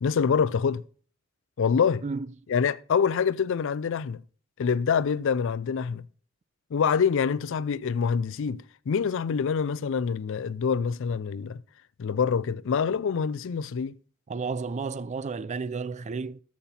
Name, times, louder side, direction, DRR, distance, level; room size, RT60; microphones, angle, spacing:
voice 1, 0.0-0.8 1.6-2.0 2.5-4.2 4.6-6.1 6.7-11.6 12.0-13.9, left 6 dB, 65° left, 0.4 m, -26 dB
voice 2, 14.3-16.4, right 4 dB, 35° right, 0.4 m, -32 dB
13.5 x 5.7 x 4.3 m
head